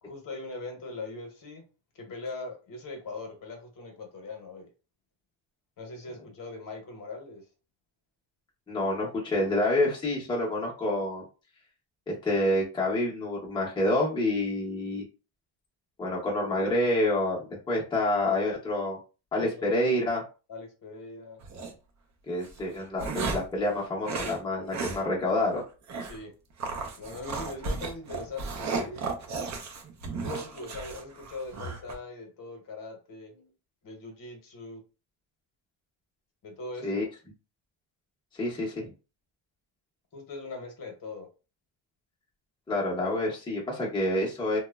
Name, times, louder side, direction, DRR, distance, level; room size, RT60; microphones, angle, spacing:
voice 1, 0.0-1.6 1.9-4.7 5.8-7.4 19.5-20.0 20.5-21.4 26.0-26.3 27.0-29.1 30.2-33.5 33.8-34.8 36.4-37.1 40.1-41.3, left 3 dB, 45° left, 0.9 m, -41 dB
voice 2, 8.7-11.2 12.1-15.0 16.0-19.0 19.3-20.2 22.3-25.6 36.8-37.1 38.3-38.9 42.7-44.6, left 1 dB, 10° left, 0.6 m, -28 dB
sound 1, 21.4-21.7 22.4-23.6 24.0-24.4 24.7-25.0 25.3-25.4 25.9-26.2 26.6-31.9, right 4 dB, 35° right, 0.5 m, -34 dB
2.9 x 2.1 x 2.2 m
cardioid pair, 130°, 48 cm